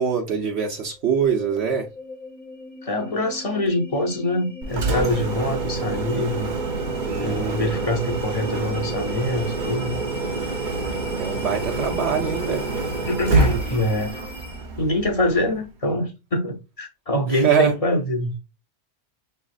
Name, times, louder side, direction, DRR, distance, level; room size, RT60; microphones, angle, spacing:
voice 1, 0.0-1.9 7.0-7.7 11.1-12.7 17.3-17.8, right 7 dB, 70° right, 1.1 m, -24 dB
sound 1, 0.9-14.8, left 2 dB, 5° right, 0.7 m, -40 dB
voice 2, 2.8-6.5 7.1-10.0 13.1-14.2 14.8-18.3, left 1 dB, 35° left, 0.7 m, -24 dB
Engine, 4.6-15.6, right 3 dB, 50° right, 0.7 m, -27 dB
6.0 x 3.1 x 2.4 m
omnidirectional pair, 1.2 m